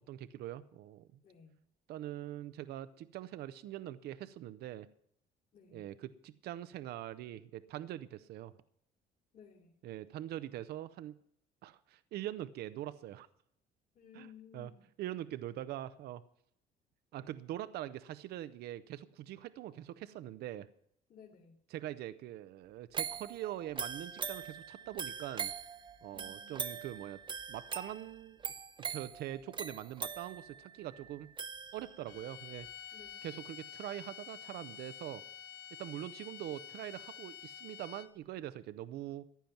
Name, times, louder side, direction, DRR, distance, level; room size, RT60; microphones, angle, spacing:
voice 1, 0.1-1.1 1.9-4.9 5.7-8.5 9.8-11.1 11.6-13.3 14.1-14.7 15.0-16.2 17.1-20.7 21.7-25.5 26.0-27.2 27.5-28.4 28.9-31.3 31.7-32.7 33.2-35.2 35.8-39.2, right 13 dB, 70° right, 14 dB, 0.6 m, -43 dB
voice 2, 1.2-1.6 5.5-5.9 9.3-9.8 13.9-14.9 21.1-21.6 26.1-26.8 32.9-33.3, left 6 dB, 55° left, -5 dB, 3.1 m, -57 dB
sound 1, 22.9-32.2 32.7-32.8, right 6 dB, 30° right, 0.8 m, -42 dB
sound 2, 32.1-38.3, left 9 dB, 80° left, 1.4 m, -49 dB
15.0 x 10.5 x 5.8 m, 0.71 s
cardioid pair, 110°, 17 cm